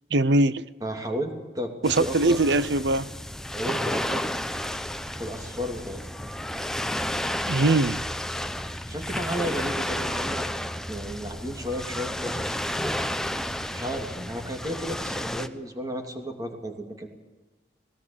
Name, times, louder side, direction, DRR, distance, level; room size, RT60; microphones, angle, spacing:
voice 1, 0.1-0.6 1.8-3.1 7.5-8.0, right 2 dB, 75° right, 0.7 m, -21 dB
voice 2, 0.8-2.4 3.5-4.2 5.1-6.0 8.9-12.6 13.6-17.1, equal, 20° right, 2.8 m, -33 dB
sound 1, 1.8-15.5, left 1 dB, 5° left, 0.8 m, -31 dB
19.5 x 18.0 x 8.8 m
head